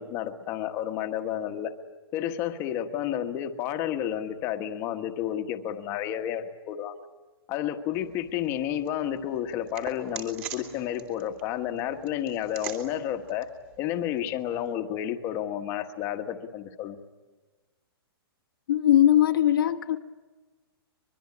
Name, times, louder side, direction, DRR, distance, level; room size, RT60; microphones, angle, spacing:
voice 1, 0.0-1.7 2.1-7.0 7.5-13.5 13.8-17.0, left 10 dB, 20° left, 7 dB, 1.2 m, -31 dB
sound 1, 7.9-14.7, right 9 dB, 30° right, 2.7 m, -45 dB
voice 2, 18.7-20.0, left 11 dB, 60° left, 4 dB, 1.1 m, -20 dB
24.0 x 22.0 x 9.7 m, 1.3 s
hypercardioid pair, 175°, 13 cm